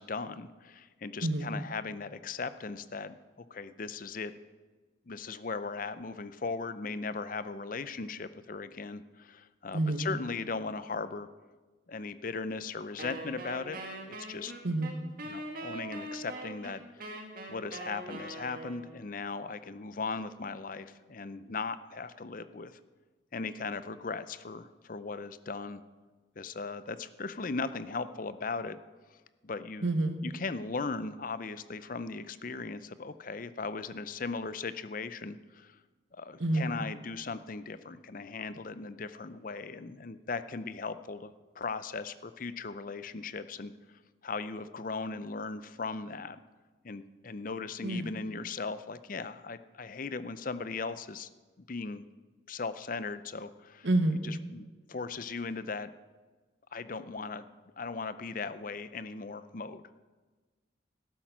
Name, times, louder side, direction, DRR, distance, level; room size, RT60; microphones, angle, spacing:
voice 1, 0.0-3.2 3.5-4.3 5.1-11.3 11.9-13.8 14.1-14.5 15.2-17.2 17.5-22.7 23.3-25.8 26.4-28.8 29.4-29.9 30.2-35.8 36.1-43.7 44.2-46.4 46.8-51.3 51.7-52.0 52.5-53.9 54.2-55.9 56.7-57.5 57.8-59.8, left 4 dB, 45° left, 13 dB, 0.6 m, -38 dB
voice 2, 1.2-1.5 9.7-10.1 14.6-14.9 29.8-30.2 36.4-36.7 47.8-48.1 53.8-54.2, right 2 dB, 70° right, 8 dB, 1.2 m, -28 dB
Wind instrument woodwind instrument, 13.0-19.0, right 2 dB, 45° right, 2.1 m, -42 dB
13.5 x 11.5 x 6.1 m, 1.3 s
head